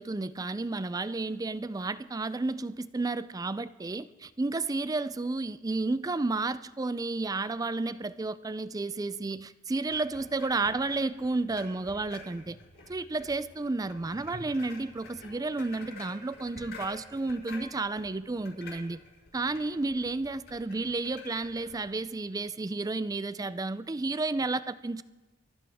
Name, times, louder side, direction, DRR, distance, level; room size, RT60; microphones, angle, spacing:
voice 1, 0.0-12.6 12.9-19.0 19.3-25.0, right 3 dB, 20° right, 15 dB, 0.4 m, -32 dB
sound 1, 9.8-21.8, left 2 dB, 60° left, 6.1 m, -49 dB
24.5 x 14.5 x 3.6 m, 1.2 s
head